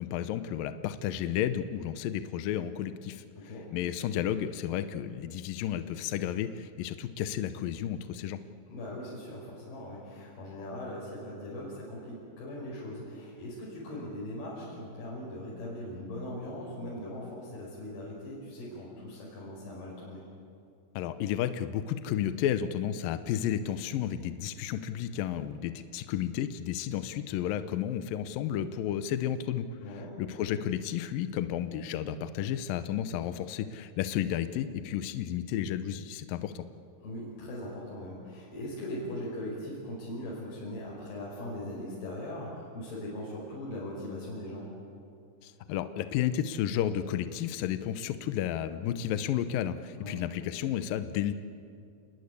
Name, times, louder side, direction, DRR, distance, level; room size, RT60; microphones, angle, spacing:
voice 1, 0.0-3.3 3.7-8.4 20.9-29.7 30.2-36.6 45.4-51.3, left 10 dB, 85° left, 11 dB, 2.0 m, -32 dB
voice 2, 3.4-3.7 8.7-20.2 29.8-30.1 37.0-44.7 50.0-50.2, left 1 dB, 60° left, -6 dB, 7.1 m, -40 dB
29.0 x 20.5 x 8.3 m, 2.4 s
omnidirectional pair, 5.2 m